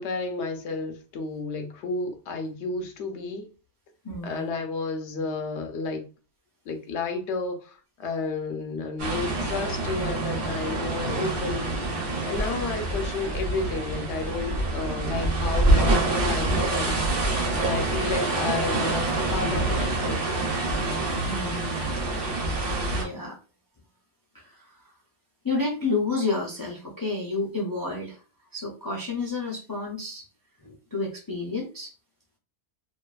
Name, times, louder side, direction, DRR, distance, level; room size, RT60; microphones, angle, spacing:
voice 1, 0.0-3.5 4.2-6.0 6.7-17.0 17.5-20.2, left 3 dB, 85° left, 0.9 m, -32 dB
voice 2, 4.0-4.5 12.3-12.5 21.2-21.9 22.9-23.4 24.3-24.9 25.4-28.2 28.5-30.2 30.6-31.9, left 3 dB, 35° left, 0.3 m, -30 dB
sound 1, 9.0-23.0, right 2 dB, 65° right, 1.0 m, -26 dB
2.5 x 2.3 x 2.3 m
omnidirectional pair, 1.1 m